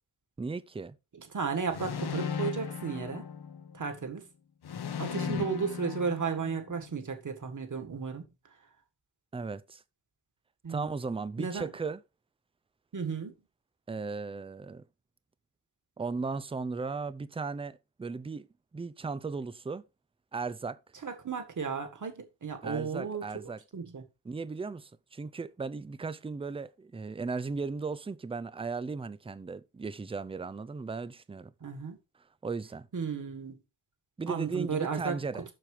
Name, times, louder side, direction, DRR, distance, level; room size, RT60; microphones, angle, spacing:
voice 1, 0.4-1.0 5.2-5.5 9.3-9.8 10.7-12.0 13.9-14.8 16.0-18.5 18.7-19.8 20.3-20.8 22.6-23.6 24.2-31.5 32.4-32.9 34.2-35.4, right 4 dB, 15° right, 0.4 m, -36 dB
voice 2, 1.1-3.3 3.7-4.3 5.0-8.3 10.6-10.9 11.4-11.7 12.9-13.3 21.0-23.2 23.7-24.1 31.6-32.0 32.9-33.6 34.3-35.2, right 5 dB, 40° right, 1.8 m, -34 dB
sound 1, 1.7-3.9 4.6-6.8, left 7 dB, 60° left, 0.9 m, -37 dB
7.5 x 6.6 x 4.9 m
wide cardioid pair, 175°, 45 cm